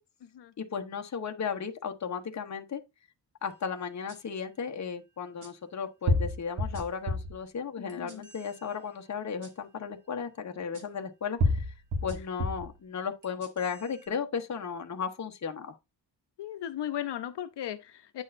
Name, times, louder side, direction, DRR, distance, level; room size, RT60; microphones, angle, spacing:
voice 1, 0.6-2.8 3.4-11.7 12.0-15.8, left 6 dB, 40° left, 1.0 m, -35 dB
sound 1, 4.1-4.2 5.4-5.5 6.1-7.4 7.9-8.5 9.4-9.5 10.7-10.8 11.4-12.7 13.2-13.8, left 1 dB, 45° right, 1.8 m, -29 dB
voice 2, 7.8-8.3 16.4-18.2, left 11 dB, 75° left, 0.8 m, -36 dB
8.9 x 6.3 x 2.6 m
wide cardioid pair, 165°, 41 cm